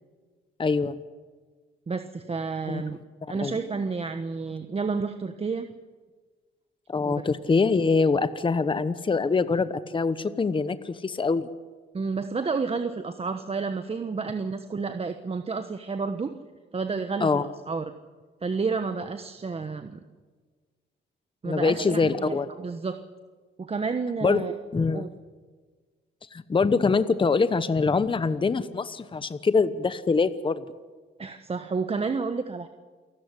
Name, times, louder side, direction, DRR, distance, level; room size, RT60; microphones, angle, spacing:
voice 1, 0.6-0.9 2.7-2.8 3.4-3.5 6.9-11.5 17.2-17.5 21.4-22.5 24.2-24.4 24.7-25.1 26.3-30.6, left 4 dB, 25° left, 13 dB, 1.0 m, -24 dB
voice 2, 1.9-3.0 3.3-5.7 7.0-7.1 11.9-16.3 16.7-17.9 18.4-20.0 21.4-23.0 23.6-24.5 24.9-25.1 31.2-32.7, right 4 dB, 30° right, 8 dB, 1.2 m, -30 dB
28.5 x 13.0 x 9.9 m, 1.5 s
cardioid pair, 90°, 20 cm